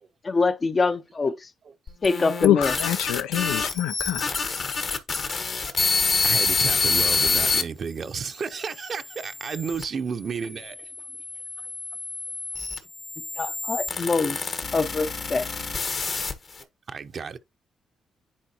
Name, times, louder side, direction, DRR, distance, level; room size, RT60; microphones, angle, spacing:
voice 1, 0.2-1.5 2.0-2.7 13.4-14.4 14.7-15.5, left 4 dB, 40° left, 0.6 m, -24 dB
sound 1, 1.9-7.6 8.3-9.8 10.6-16.6, left 4 dB, 55° left, 1.3 m, -27 dB
voice 2, 2.4-4.3, left 13 dB, 90° left, 0.3 m, -24 dB
voice 3, 6.2-10.9 14.0-14.1 15.5-15.6 16.9-17.4, right 6 dB, 55° right, 0.6 m, -32 dB
10.0 x 4.0 x 2.8 m
supercardioid pair, 60°, 0 cm